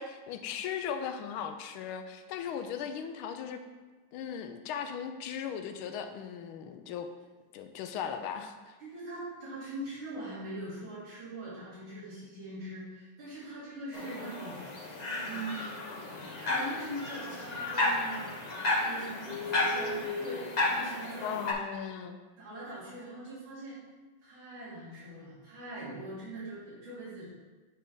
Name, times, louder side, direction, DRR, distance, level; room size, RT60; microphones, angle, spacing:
voice 1, 0.0-3.6 4.1-7.1 7.5-8.8 21.2-22.2, left 7 dB, 85° left, 8 dB, 1.4 m, -37 dB
voice 2, 8.8-14.6 15.2-16.1 16.4-18.4 18.7-21.4 22.4-23.8 24.2-27.3, right 1 dB, 75° right, -9 dB, 3.1 m, -42 dB
sound 1, 13.9-21.5, left 2 dB, 70° left, 0.4 m, -33 dB
10.0 x 3.4 x 3.8 m, 1.3 s
omnidirectional pair, 2.2 m